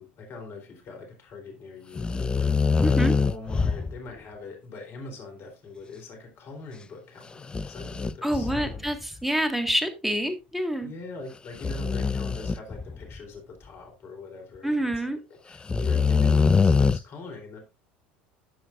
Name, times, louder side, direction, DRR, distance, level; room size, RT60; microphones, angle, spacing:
voice 1, 0.0-9.2 10.8-14.9 15.5-17.6, left 3 dB, 45° left, 3 dB, 3.7 m, -42 dB
sound 1, 2.0-4.0 7.4-9.0 9.7-9.8 11.6-13.2 14.9-15.0 15.7-17.0, left 5 dB, 15° left, 0.4 m, -24 dB
voice 2, 2.8-3.1 8.2-10.9 14.6-15.2, right 1 dB, ahead, 7 dB, 1.9 m, -27 dB
13.5 x 7.1 x 2.6 m, 0.26 s
hypercardioid pair, 80°, 6 cm